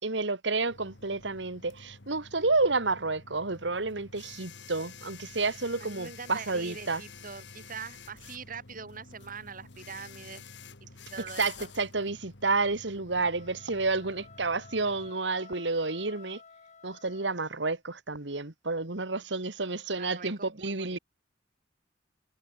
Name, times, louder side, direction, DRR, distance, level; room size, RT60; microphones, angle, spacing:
voice 1, 0.0-7.0 11.4-16.4 16.8-21.0, right 3 dB, 75° right, 2.2 m, -30 dB
sound 1, 0.7-15.1, left 5 dB, 70° left, 2.3 m, -49 dB
voice 2, 5.8-10.4 10.8-11.7 20.0-21.0, right 5 dB, 50° right, 2.8 m, -43 dB
sound 2, 13.2-17.7, left 5 dB, 40° left, 3.4 m, -53 dB
head